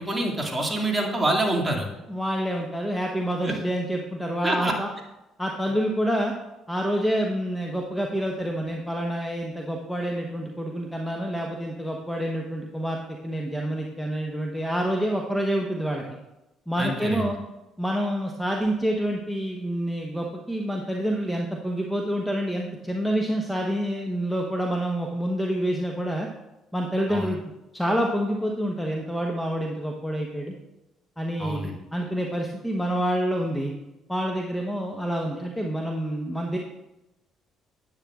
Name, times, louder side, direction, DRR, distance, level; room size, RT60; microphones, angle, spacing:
voice 1, 0.0-1.9 3.4-3.5 4.4-4.7 16.8-17.3 27.1-27.4 31.4-31.8, right 1 dB, 15° right, -1 dB, 2.2 m, -26 dB
voice 2, 2.1-4.9 5.4-6.3 6.7-16.0 16.7-17.4 17.8-26.3 26.7-27.4 27.7-30.5 31.2-33.7 34.1-36.6, equal, 5° left, 1 dB, 1.0 m, -27 dB
9.9 x 8.9 x 2.4 m, 0.98 s
supercardioid pair, 65°, 0 cm